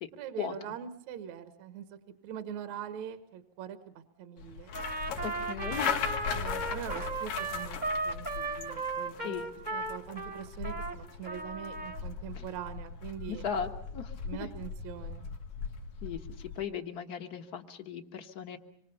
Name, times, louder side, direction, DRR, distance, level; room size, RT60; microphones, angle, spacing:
voice 1, 0.2-2.0 2.2-4.7 6.3-7.8 8.1-9.4 9.7-13.4 14.3-15.3, right 9 dB, 65° right, 9 dB, 2.2 m, -42 dB
sound 1, 4.4-16.6, left 6 dB, 80° left, 3.5 m, -39 dB
Trumpet, 4.7-11.0 11.2-12.0, right 3 dB, 25° right, 1.1 m, -36 dB
voice 2, 5.2-6.0 9.2-9.5 12.3-12.4 13.3-14.5 16.0-18.6, left 7 dB, 45° left, 6 dB, 1.3 m, -37 dB
26.5 x 24.5 x 7.0 m, 0.68 s
omnidirectional pair, 3.8 m